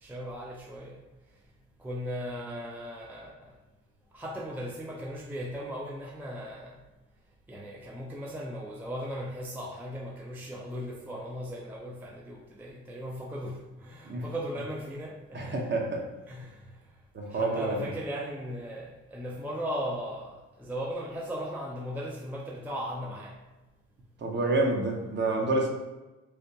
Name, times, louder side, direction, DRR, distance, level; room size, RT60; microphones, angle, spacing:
voice 1, 0.0-1.0 1.8-3.6 4.1-6.8 7.5-15.7 16.3-16.8 17.3-23.4, equal, 5° right, -1 dB, 0.4 m, -37 dB
voice 2, 15.3-16.0 17.1-17.8 24.2-25.7, right 2 dB, 35° right, 1 dB, 0.7 m, -28 dB
3.3 x 2.9 x 2.7 m, 1.1 s
cardioid pair, 90°, 30 cm